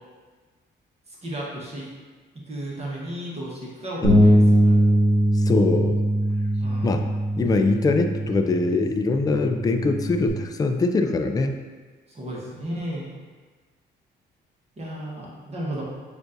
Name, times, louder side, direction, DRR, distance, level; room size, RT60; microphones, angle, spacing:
voice 1, 1.1-1.9 2.5-5.0 6.6-7.1 12.1-13.1 14.8-15.8, right 1 dB, 30° right, -5 dB, 1.2 m, -34 dB
Bass guitar, 4.0-10.3, equal, 65° right, 1.1 m, -21 dB
voice 2, 5.3-6.0 6.8-7.1 7.4-11.5, left 3 dB, 20° left, 6 dB, 0.3 m, -22 dB
6.9 x 2.5 x 2.6 m, 1.4 s
cardioid pair, 90°, 20 cm